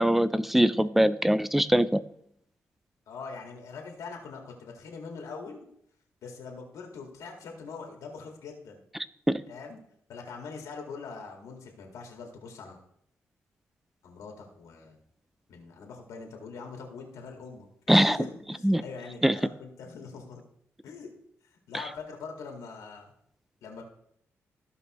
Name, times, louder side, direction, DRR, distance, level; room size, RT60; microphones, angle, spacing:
voice 1, 0.0-2.0 9.3-9.4 17.9-18.2 18.6-18.8 19.2-19.3, right 1 dB, 5° right, 15 dB, 0.4 m, -22 dB
voice 2, 3.1-5.7 6.2-8.8 9.5-9.8 10.1-12.8 14.0-15.0 15.5-20.4 20.8-21.1 21.5-23.1 23.6-23.8, left 4 dB, 90° left, 1 dB, 1.9 m, -43 dB
15.0 x 5.4 x 3.0 m, 0.70 s
cardioid pair, 85°, 5 cm